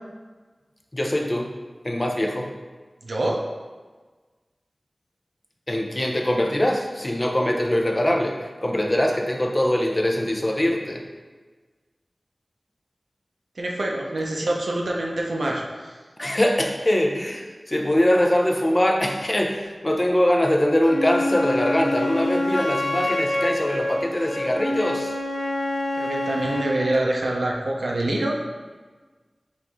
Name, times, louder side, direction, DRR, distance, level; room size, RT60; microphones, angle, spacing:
voice 1, 0.9-1.5 1.8-2.5 5.7-11.1 16.2-25.2, left 1 dB, 30° left, 2 dB, 0.5 m, -22 dB
voice 2, 3.0-3.4 13.6-15.9 26.0-28.4, right 1 dB, 80° right, -1 dB, 0.6 m, -25 dB
Wind instrument woodwind instrument, 20.8-26.8, left 1 dB, 85° left, 0.8 m, -26 dB
4.5 x 2.6 x 3.5 m, 1.4 s
wide cardioid pair, 60°, 0 cm